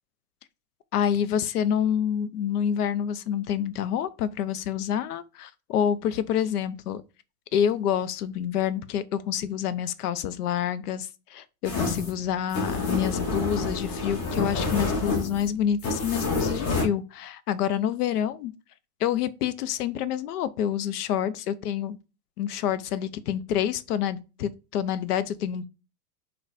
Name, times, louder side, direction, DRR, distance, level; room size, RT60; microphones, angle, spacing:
voice 1, 0.9-7.0 7.5-18.5 19.0-22.0 22.4-25.7, left 9 dB, 85° left, 0.5 m, -27 dB
sound 1, 11.6-16.8, left 3 dB, 35° left, 1.0 m, -28 dB
3.9 x 2.2 x 2.5 m
hypercardioid pair, 120°, 45 cm